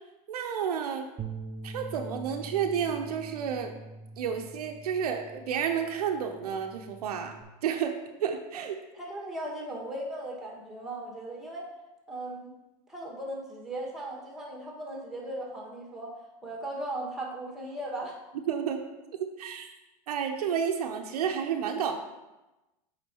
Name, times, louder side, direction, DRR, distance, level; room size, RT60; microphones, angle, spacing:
voice 1, 0.3-1.1 1.6-3.8 4.2-7.3 7.6-8.8 18.5-18.8 19.2-19.7 20.1-21.9, right 8 dB, 75° right, 5 dB, 0.7 m, -31 dB
Bass guitar, 1.2-7.4, right 3 dB, 25° right, 0.5 m, -44 dB
voice 2, 8.9-11.7 12.1-12.5 12.9-18.2, right 1 dB, ahead, -2 dB, 1.7 m, -37 dB
8.2 x 5.0 x 2.9 m, 1.0 s
hypercardioid pair, 100°, 20 cm